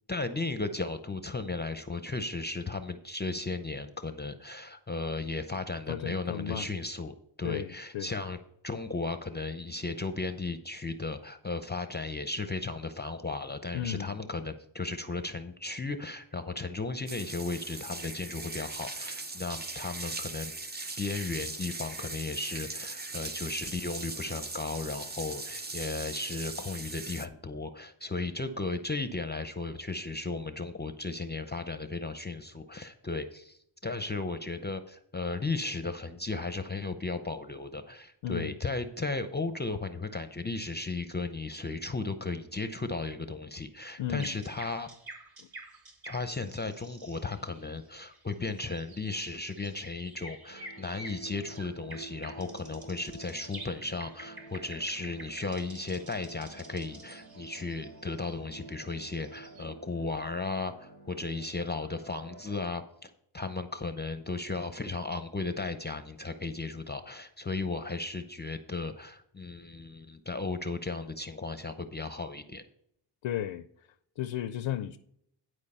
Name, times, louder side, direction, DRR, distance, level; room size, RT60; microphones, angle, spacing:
voice 1, 0.1-8.4 8.6-20.5 21.0-44.9 46.1-72.6, left 3 dB, 20° left, 0.6 m, -35 dB
voice 2, 5.9-6.7 7.4-8.1 13.7-14.2 38.2-38.5 44.0-44.4 45.4-45.5 73.2-73.7 74.2-75.0, left 11 dB, 80° left, 0.6 m, -34 dB
sound 1, 17.1-27.3, right 3 dB, 20° right, 0.6 m, -39 dB
sound 2, 44.0-59.6, right 2 dB, 45° right, 2.3 m, -50 dB
sound 3, 50.5-62.7, right 3 dB, 90° right, 3.2 m, -50 dB
11.0 x 4.8 x 5.5 m
cardioid pair, 85°, 50 cm